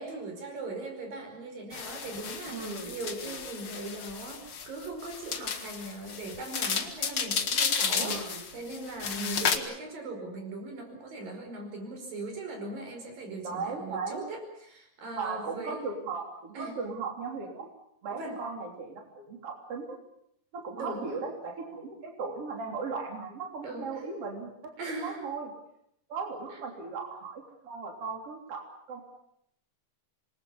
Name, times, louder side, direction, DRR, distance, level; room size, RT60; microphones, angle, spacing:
voice 1, 0.0-15.9 16.5-16.8 18.1-18.4 20.8-21.2 23.6-24.1 24.8-25.3 26.5-26.6, right 2 dB, 85° right, 4 dB, 6.9 m, -39 dB
sound 1, 1.7-9.6, left 6 dB, 45° left, 2.2 m, -32 dB
voice 2, 2.5-3.4 8.0-8.4 9.2-9.6 13.4-14.2 15.2-17.7 18.0-20.0 20.5-25.5 26.1-29.0, right 4 dB, 45° right, 2 dB, 4.1 m, -37 dB
27.0 x 22.0 x 7.1 m, 0.73 s
omnidirectional pair, 3.9 m